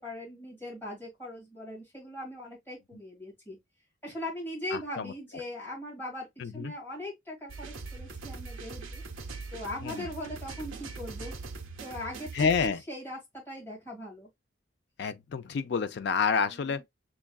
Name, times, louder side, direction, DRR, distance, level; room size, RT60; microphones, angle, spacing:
voice 1, 0.0-3.6 4.0-6.3 6.5-9.0 9.5-11.3 11.8-14.3 16.3-16.8, left 1 dB, 10° left, 2.1 m, -40 dB
voice 2, 4.7-5.1 6.4-6.7 9.8-10.1 12.3-12.8 15.0-16.8, left 5 dB, 55° left, 0.3 m, -29 dB
sound 1, 7.5-12.7, right 4 dB, 85° right, 0.6 m, -41 dB
6.1 x 2.3 x 2.2 m
head